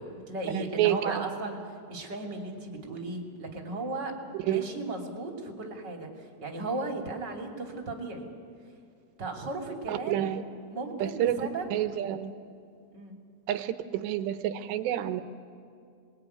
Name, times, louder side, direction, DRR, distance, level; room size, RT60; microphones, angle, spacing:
voice 1, 0.0-1.6 1.9-4.1 4.4-8.3 9.2-10.3 10.7-11.6 12.9-13.2, right 2 dB, 30° right, 1 dB, 2.6 m, -36 dB
voice 2, 0.5-1.3 4.5-4.7 9.9-10.4 11.0-12.3 13.5-15.2, right 12 dB, 80° right, 10 dB, 3.1 m, -29 dB
28.0 x 21.5 x 9.4 m, 2.3 s
omnidirectional pair, 5.2 m